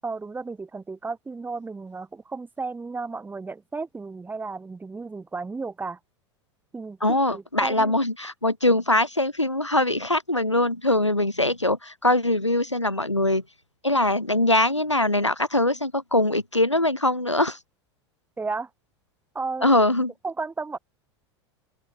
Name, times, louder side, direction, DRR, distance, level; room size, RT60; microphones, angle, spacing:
voice 1, 0.0-6.0 6.7-7.9 18.4-18.7 19.3-19.7 20.2-20.8, right 4 dB, 15° right, 7.6 m, -33 dB
voice 2, 7.0-13.4 13.8-17.6 19.6-20.1, left 1 dB, 85° left, 4.9 m, -22 dB
open air
figure-of-eight pair, 85°, 15 cm